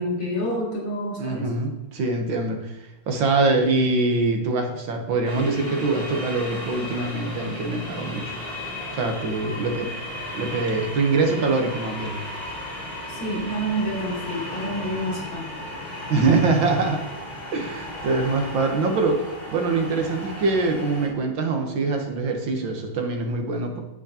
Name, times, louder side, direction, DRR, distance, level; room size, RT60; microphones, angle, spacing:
voice 1, 0.0-1.5 13.2-15.5, equal, 80° left, -4 dB, 4.1 m, -28 dB
voice 2, 1.2-2.8 3.1-8.4 8.9-9.9 10.3-12.2 16.1-17.0 17.5-19.2 19.5-23.8, right 3 dB, 70° right, 3 dB, 1.9 m, -24 dB
sound 1, 5.2-21.1, left 1 dB, 25° left, 3.0 m, -35 dB
9.3 x 8.0 x 2.8 m, 0.98 s
omnidirectional pair, 2.3 m